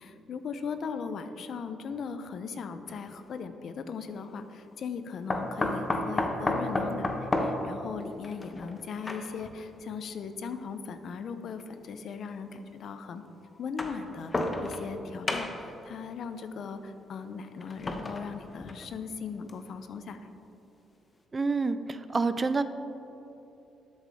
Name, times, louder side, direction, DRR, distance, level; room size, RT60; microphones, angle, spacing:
voice 1, 0.0-13.2 13.6-14.3 14.6-20.3, left 5 dB, 65° left, 10 dB, 0.6 m, -38 dB
sound 1, 2.9-3.0 5.3-9.6 10.5-10.6 11.8-11.9 13.6-15.0 15.3-15.8 17.6-19.0 19.5-19.6 20.0-20.1, left 2 dB, 30° left, 0.9 m, -32 dB
voice 2, 21.3-22.6, right 4 dB, 30° right, 12 dB, 0.4 m, -28 dB
12.0 x 7.7 x 3.6 m, 2.9 s
cardioid pair, 90°, 0 cm